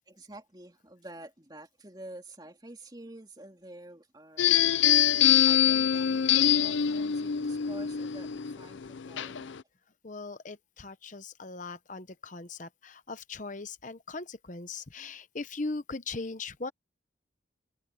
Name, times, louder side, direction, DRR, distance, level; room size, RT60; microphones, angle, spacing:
voice 1, 0.1-4.6 4.9-9.5, right 1 dB, 20° right, 3.0 m, -48 dB
sound 1, 4.4-9.6, left 9 dB, 70° left, 0.5 m, -24 dB
voice 2, 10.0-16.7, left 3 dB, 40° left, 1.0 m, -39 dB
head